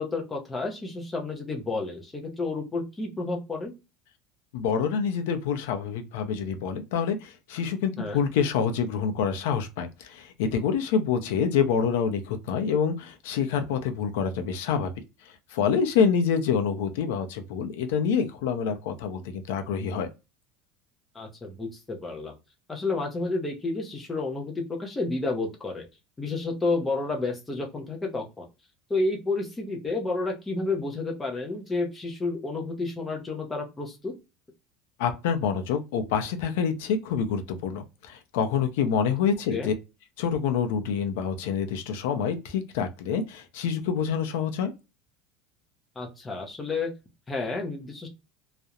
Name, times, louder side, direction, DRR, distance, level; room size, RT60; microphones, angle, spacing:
voice 1, 0.0-3.7 8.0-8.2 21.1-22.3 22.7-25.9 26.2-28.5 28.9-34.1 39.5-39.7 46.0-46.9 47.3-48.1, left 3 dB, 10° left, 0.5 m, -30 dB
voice 2, 4.5-14.9 15.5-20.1 35.0-39.7 40.2-44.7, left 6 dB, 70° left, 0.5 m, -27 dB
2.4 x 2.0 x 2.7 m
cardioid pair, 180°, 0 cm